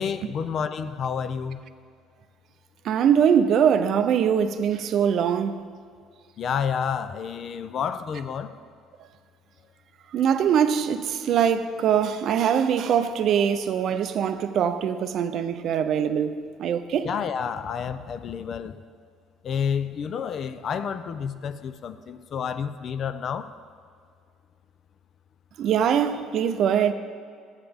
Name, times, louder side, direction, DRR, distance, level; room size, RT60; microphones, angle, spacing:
voice 1, 0.0-1.6 6.4-8.5 17.0-18.8 19.4-23.5, left 7 dB, 40° left, 0.4 m, -29 dB
voice 2, 2.8-5.6 10.1-17.1 25.6-26.9, right 8 dB, 50° right, 0.5 m, -22 dB
12.0 x 8.8 x 3.5 m
cardioid pair, 140°, 0 cm